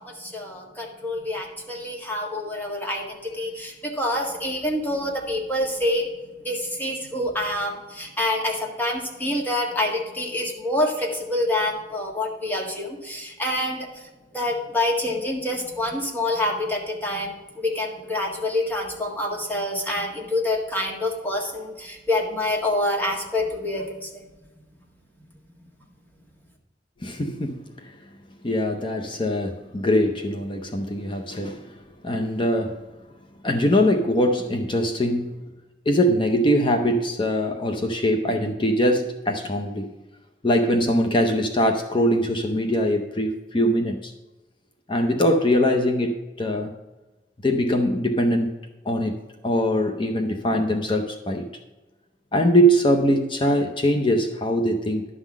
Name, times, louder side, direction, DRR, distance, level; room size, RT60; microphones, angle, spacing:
voice 1, 0.0-6.1 6.4-14.1 14.3-24.2, left 1 dB, 10° left, -1 dB, 1.7 m, -27 dB
voice 2, 27.0-27.9 28.4-31.7 32.0-32.9 33.4-35.3 35.9-39.9 40.4-44.1 44.9-46.7 47.4-48.6 48.8-49.1 49.4-51.5 52.3-55.1, equal, 30° left, 3 dB, 0.7 m, -22 dB
11.0 x 3.8 x 7.2 m, 1.1 s
head